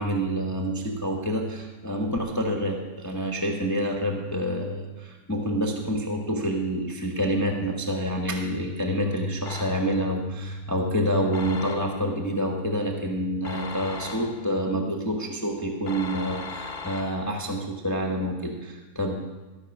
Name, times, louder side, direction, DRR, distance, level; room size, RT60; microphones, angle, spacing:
voice 1, 0.0-19.2, equal, 15° left, 0 dB, 0.9 m, -27 dB
sound 1, 9.5-10.1 11.3-12.2 13.4-14.6 15.9-17.5, left 4 dB, 40° left, 0.9 m, -38 dB
13.5 x 6.0 x 7.2 m, 1.2 s
omnidirectional pair, 1.8 m